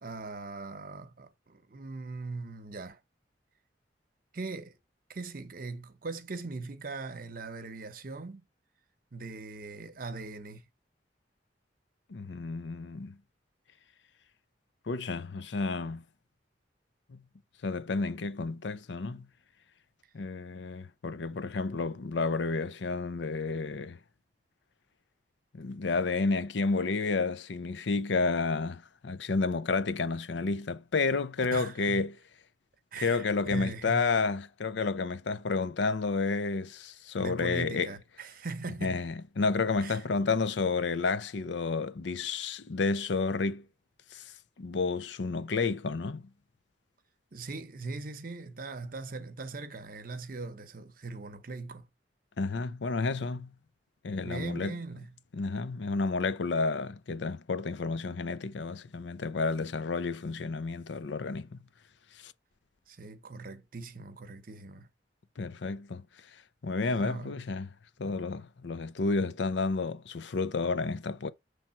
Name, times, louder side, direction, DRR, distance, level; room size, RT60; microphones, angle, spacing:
voice 1, 0.0-3.0 4.3-4.8 5.1-8.4 9.1-10.6 31.5-32.1 32.9-34.1 37.2-39.1 39.8-40.1 47.3-51.9 54.2-55.2 62.9-64.9 66.9-67.4, right 3 dB, 50° right, 0.9 m, -40 dB
voice 2, 12.1-13.2 14.9-16.0 17.1-17.2 17.6-19.3 20.1-24.0 25.5-32.2 33.0-37.9 38.8-43.6 44.1-44.3 44.6-46.3 52.4-53.5 54.0-54.7 55.3-61.6 62.2-62.3 65.4-66.0 66.6-67.7 68.0-71.3, left 4 dB, 80° left, 0.6 m, -31 dB
7.3 x 3.4 x 5.7 m
head